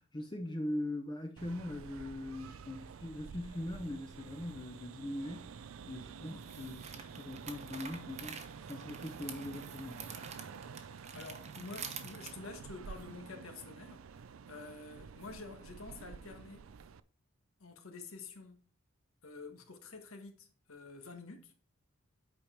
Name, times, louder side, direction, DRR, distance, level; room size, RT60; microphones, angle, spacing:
voice 1, 0.0-8.4 8.7-10.1, left 1 dB, 20° left, 0.7 m, -41 dB
sound 1, 1.4-17.0, right 6 dB, 75° right, 0.4 m, -49 dB
sound 2, 3.6-3.7 6.3-12.3, right 6 dB, 35° right, 0.9 m, -48 dB
voice 2, 10.8-16.6 17.6-18.6 19.2-21.5, left 3 dB, 85° left, 1.5 m, -49 dB
8.5 x 5.2 x 4.4 m
head